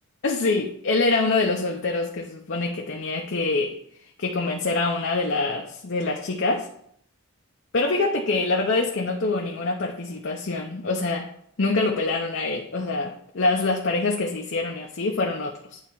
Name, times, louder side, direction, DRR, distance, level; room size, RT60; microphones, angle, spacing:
voice 1, 0.2-3.8 4.2-6.7 7.7-11.3 11.6-15.8, left 3 dB, 55° left, 1 dB, 0.6 m, -25 dB
9.0 x 3.4 x 4.6 m, 0.68 s
head